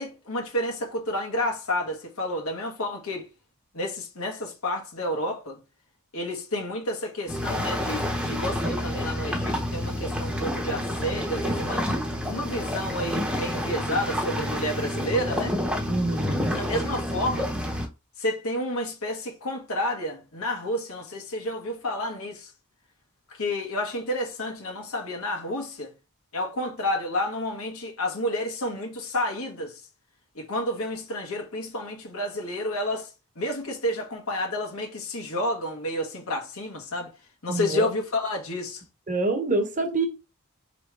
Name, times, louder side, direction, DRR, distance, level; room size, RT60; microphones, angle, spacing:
voice 1, 0.0-3.3 3.7-5.6 6.1-11.8 12.3-15.6 16.6-17.5 18.2-22.5 23.3-25.9 26.3-29.8 30.3-37.1 37.4-38.8, left 1 dB, 80° left, 1.4 m, -30 dB
sound 1, 7.3-17.8, equal, 5° right, 0.9 m, -29 dB
voice 2, 15.9-16.6 37.5-37.9 39.1-40.1, right 2 dB, 35° right, 1.1 m, -26 dB
4.7 x 3.3 x 3.3 m
head